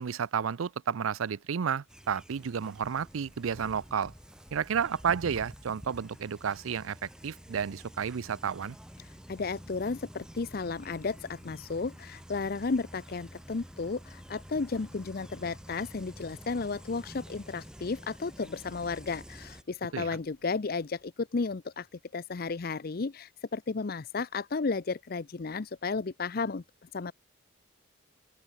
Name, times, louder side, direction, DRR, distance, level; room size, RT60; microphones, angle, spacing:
voice 1, 0.0-4.1 4.5-8.8 19.9-20.1, right 7 dB, 85° right, 0.5 m, -31 dB
sound 1, 1.9-19.6, equal, 5° right, 2.7 m, -49 dB
sound 2, 2.8-17.4, left 1 dB, 15° left, 6.2 m, -65 dB
voice 2, 9.0-21.9 22.1-26.6 26.9-27.1, left 4 dB, 50° left, 0.6 m, -33 dB
sound 3, 13.8-21.1, left 2 dB, 80° left, 6.7 m, -69 dB
open air
head